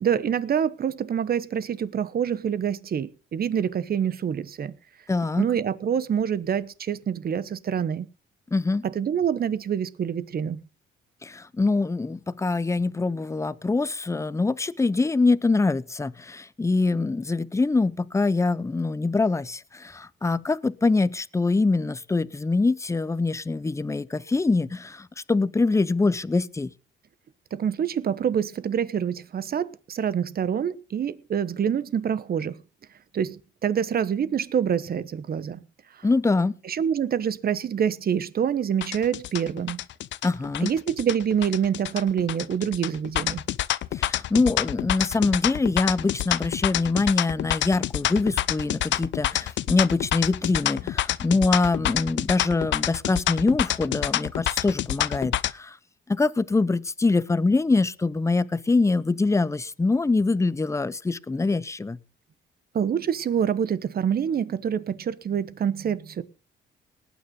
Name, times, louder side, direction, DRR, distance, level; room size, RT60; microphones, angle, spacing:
voice 1, 0.0-4.7 5.4-8.1 8.8-10.6 27.5-32.6 33.1-35.6 36.6-39.8 40.6-43.4 62.7-66.2, right 8 dB, 50° right, 1.1 m, -26 dB
voice 2, 5.1-5.5 8.5-8.9 11.2-26.7 36.0-36.5 40.2-40.7 43.9-55.8 56.1-62.0, left 3 dB, 15° left, 0.7 m, -24 dB
sound 1, 38.8-55.5, left 13 dB, 70° left, 0.6 m, -27 dB
19.0 x 9.3 x 3.9 m
cardioid pair, 90°, 20 cm